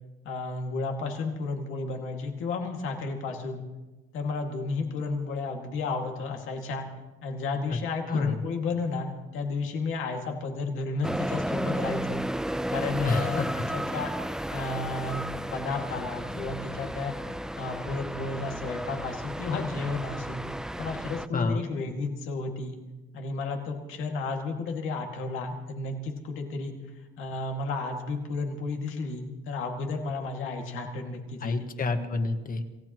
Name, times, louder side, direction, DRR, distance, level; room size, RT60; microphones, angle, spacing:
voice 1, 0.2-3.6 4.1-6.9 7.2-12.2 12.7-13.5 13.7-14.1 14.5-17.2 17.6-20.4 20.8-22.8 23.1-26.7 27.2-31.5, left 3 dB, 85° left, 2 dB, 2.3 m, -32 dB
voice 2, 8.1-8.4 13.0-13.7 21.3-21.7 31.4-32.6, left 3 dB, 45° left, 6 dB, 1.7 m, -29 dB
sound 1, 11.0-21.3, right 1 dB, 5° right, 0.4 m, -33 dB
27.5 x 16.5 x 3.1 m, 1.1 s
cardioid pair, 90°, 20 cm